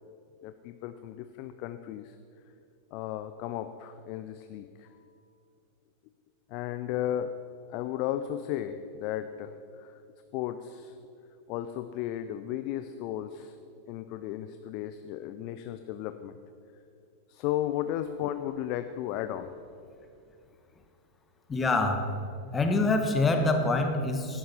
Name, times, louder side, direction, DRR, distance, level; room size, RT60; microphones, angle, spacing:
voice 1, 0.4-2.2 2.9-5.1 6.5-7.4 7.7-10.0 10.3-11.0 11.5-13.6 13.9-16.4 17.3-19.6, left 11 dB, 45° left, 10 dB, 0.6 m, -34 dB
voice 2, 21.5-22.1 22.5-24.4, left 2 dB, 15° left, 5 dB, 1.6 m, -25 dB
16.0 x 12.5 x 5.7 m, 2.5 s
figure-of-eight pair, 90°, 0 cm